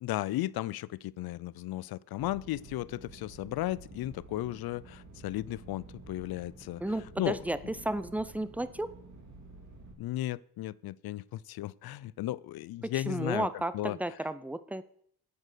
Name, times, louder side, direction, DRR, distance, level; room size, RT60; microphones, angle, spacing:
voice 1, 0.0-6.8 7.2-7.4 7.6-7.7 10.0-14.0, left 15 dB, 70° left, 21 dB, 0.5 m, -35 dB
sound 1, 2.2-9.9, right 2 dB, 45° right, 3.0 m, -51 dB
voice 2, 6.8-8.9 13.1-14.8, right 1 dB, 5° right, 15 dB, 0.4 m, -33 dB
8.8 x 8.6 x 6.6 m, 0.65 s
cardioid pair, 145°, 39 cm